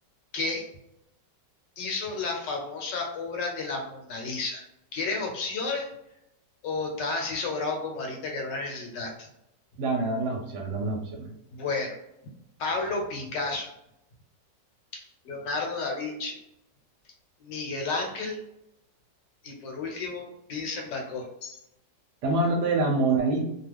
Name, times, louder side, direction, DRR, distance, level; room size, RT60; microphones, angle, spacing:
voice 1, 0.3-0.7 1.8-4.7 4.9-5.9 6.6-9.3 11.5-12.0 12.6-13.7 14.9-16.4 17.4-18.4 19.4-21.6, left 3 dB, 75° left, 1 dB, 1.4 m, -32 dB
voice 2, 9.8-11.3 22.2-23.4, right 2 dB, 75° right, 3 dB, 1.2 m, -26 dB
3.0 x 2.3 x 3.3 m, 0.82 s
omnidirectional pair, 1.9 m